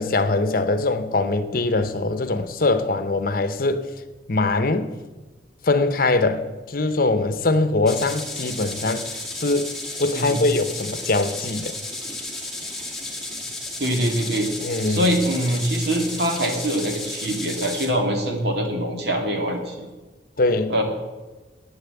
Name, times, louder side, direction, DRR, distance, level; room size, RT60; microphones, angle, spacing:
voice 1, 0.0-3.9 4.3-4.9 5.6-9.1 9.3-9.7 10.0-11.7 14.6-15.1 20.4-20.8, left 2 dB, 55° left, 11 dB, 0.9 m, -22 dB
sound 1, 7.9-17.9, left 2 dB, ahead, 2.1 m, -33 dB
voice 2, 13.8-14.5 14.9-19.9 20.7-20.8, equal, 65° right, 3 dB, 2.4 m, -24 dB
10.5 x 9.0 x 8.0 m, 1.2 s
head